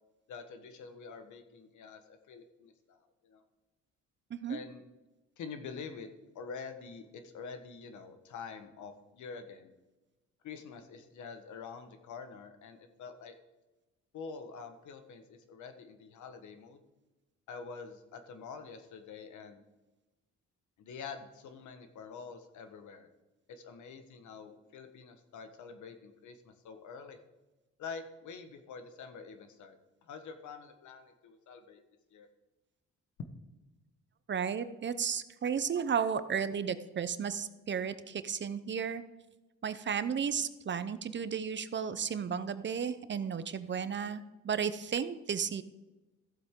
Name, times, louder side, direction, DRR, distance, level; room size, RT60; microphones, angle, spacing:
voice 1, 0.3-3.4 4.5-4.8 5.4-6.1 6.3-9.7 10.4-13.3 14.1-16.8 17.5-19.6 20.8-23.1 23.5-27.2 27.8-29.8 30.1-31.8 32.1-32.3, left 5 dB, 75° left, 8 dB, 1.3 m, -46 dB
voice 2, 34.3-39.0 39.6-45.6, right 7 dB, 40° right, 13 dB, 0.7 m, -33 dB
14.0 x 7.8 x 3.7 m, 1.1 s
cardioid pair, 90°, 30 cm